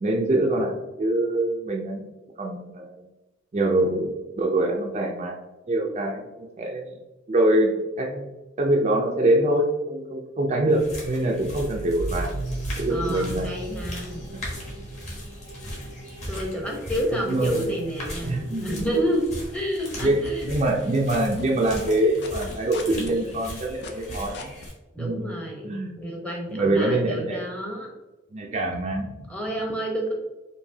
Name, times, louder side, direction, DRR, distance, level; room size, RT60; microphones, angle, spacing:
voice 1, 0.0-2.1 2.4-2.9 3.5-5.4 5.7-6.9 7.3-8.3 8.6-12.3 12.8-13.5 17.1-17.7 18.2-18.9 20.0-24.5 25.0-25.3 25.6-26.0 26.5-27.4 28.3-29.1, right 1 dB, 35° right, 0 dB, 0.4 m, -24 dB
sound 1, 10.7-24.7, left 1 dB, 35° left, 1.2 m, -38 dB
sound 2, 11.4-20.8, right 2 dB, 85° right, 0.6 m, -38 dB
voice 2, 12.9-14.2 16.3-19.2 19.5-20.4 24.9-27.9 29.3-30.1, equal, 5° left, -1 dB, 0.7 m, -29 dB
sound 3, 19.4-20.8 21.1-24.7, left 3 dB, 60° left, 0.5 m, -39 dB
4.7 x 2.6 x 2.7 m, 1.1 s
head